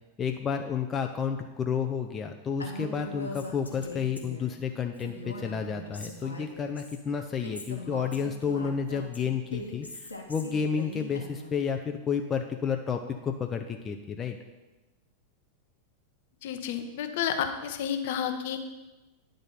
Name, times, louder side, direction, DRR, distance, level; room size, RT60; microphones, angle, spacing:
voice 1, 0.2-14.4, left 6 dB, 20° left, 5 dB, 0.5 m, -31 dB
Female speech woman speaking, 2.6-4.5 4.9-7.0 7.4-11.6, left 1 dB, 80° left, 1.1 m, -41 dB
voice 2, 16.4-18.6, left 8 dB, 50° left, 7 dB, 0.7 m, -31 dB
9.9 x 3.8 x 5.5 m, 1.1 s
figure-of-eight pair, 90°, 0 cm